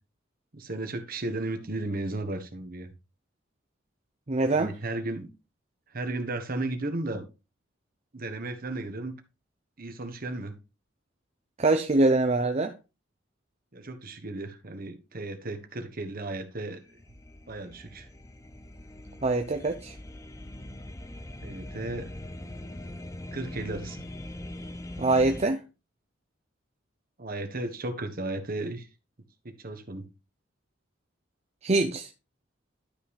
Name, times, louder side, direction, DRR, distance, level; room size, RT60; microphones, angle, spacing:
voice 1, 0.5-2.9 4.5-5.3 5.9-7.2 8.1-9.1 9.8-10.5 13.7-16.8 17.5-18.1 21.4-22.1 23.3-24.0 27.2-28.9 29.4-30.1, right 2 dB, 50° right, 1.3 m, -34 dB
voice 2, 4.3-4.7 11.6-12.7 19.2-19.9 25.0-25.6 31.6-32.1, right 2 dB, 35° right, 0.7 m, -24 dB
sound 1, 16.7-25.4, left 1 dB, 15° left, 0.7 m, -42 dB
12.0 x 5.6 x 3.4 m
head